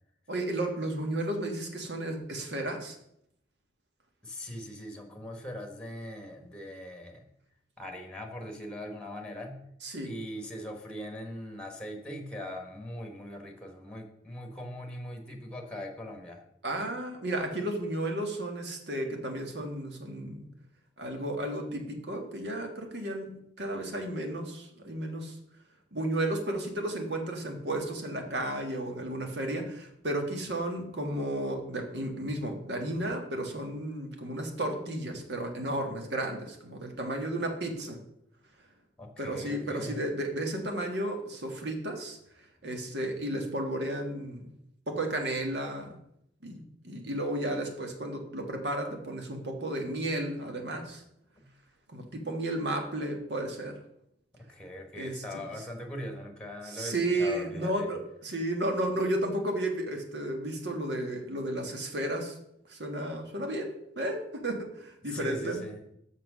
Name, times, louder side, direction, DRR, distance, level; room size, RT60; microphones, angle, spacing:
voice 1, 0.3-3.0 9.8-10.1 16.6-20.5 21.0-25.4 25.9-38.0 39.2-42.2 42.6-44.5 44.9-45.9 46.4-51.0 51.9-53.8 54.9-55.4 56.7-62.4 62.7-65.6, right 1 dB, 75° right, 3 dB, 1.7 m, -33 dB
voice 2, 4.2-7.2 7.8-9.6 10.0-16.4 39.0-40.0 51.4-51.5 54.3-57.9 65.0-65.8, left 1 dB, 5° left, 4 dB, 1.3 m, -41 dB
6.5 x 6.0 x 6.2 m, 0.76 s
head